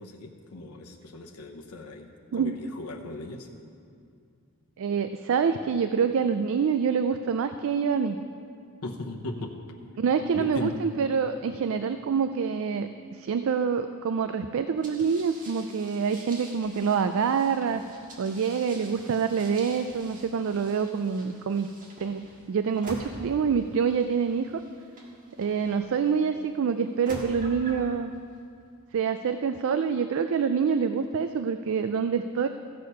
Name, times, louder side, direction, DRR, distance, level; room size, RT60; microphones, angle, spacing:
voice 1, 0.0-3.5 8.8-9.5 10.3-10.7, left 2 dB, 80° left, 1 dB, 0.9 m, -37 dB
voice 2, 4.8-8.2 10.0-17.8 18.2-21.7 22.0-24.6 25.4-28.1 28.9-32.5, right 6 dB, 65° right, 9 dB, 0.4 m, -26 dB
sound 1, 14.8-26.1 26.8-27.9, right 1 dB, 35° right, 1.8 m, -47 dB
15.0 x 6.5 x 5.5 m, 2.3 s
head